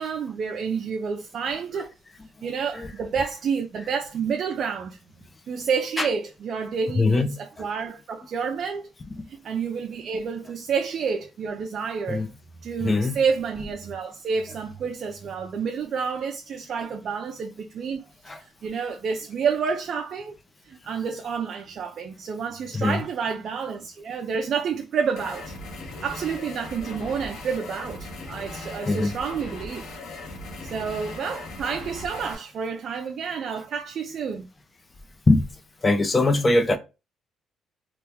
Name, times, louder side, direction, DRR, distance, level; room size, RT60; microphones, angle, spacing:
voice 1, 0.0-1.9 2.4-5.0 5.5-8.9 9.3-12.3 12.6-20.4 20.7-25.5 26.0-29.9 30.6-34.5, right 6 dB, 55° right, 0.4 m, -29 dB
voice 2, 6.9-7.7 9.0-9.1 12.1-12.3 12.8-13.2 13.6-13.7 14.5-14.6 16.8-16.9 18.2-18.4 22.7-23.1 28.5-29.2 35.3-35.5 35.8-36.8, left 2 dB, 25° left, 0.6 m, -23 dB
sound 1, 25.2-32.4, left 2 dB, 65° left, 0.9 m, -38 dB
2.9 x 2.2 x 3.4 m
cardioid pair, 105°, 0 cm